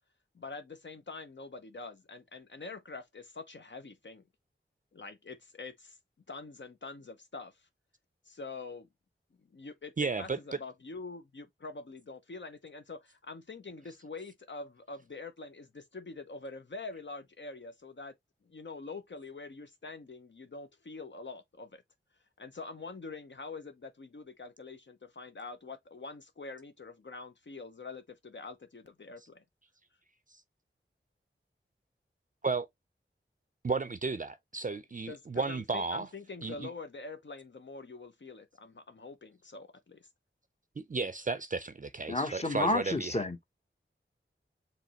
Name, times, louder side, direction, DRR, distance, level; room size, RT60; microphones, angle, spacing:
voice 1, 0.3-4.2 4.9-6.0 6.3-7.7 8.3-8.9 9.5-18.1 18.4-21.8 22.4-29.4 35.1-40.1, left 3 dB, 60° left, 0.7 m, -45 dB
voice 2, 10.0-10.4 30.3-30.4 32.4-32.7 33.6-36.1 36.4-36.7 40.8-43.2, right 4 dB, 40° right, 0.4 m, -33 dB
voice 3, 42.1-43.4, left 2 dB, 30° left, 1.0 m, -30 dB
5.0 x 3.1 x 2.8 m
wide cardioid pair, 45°, 21 cm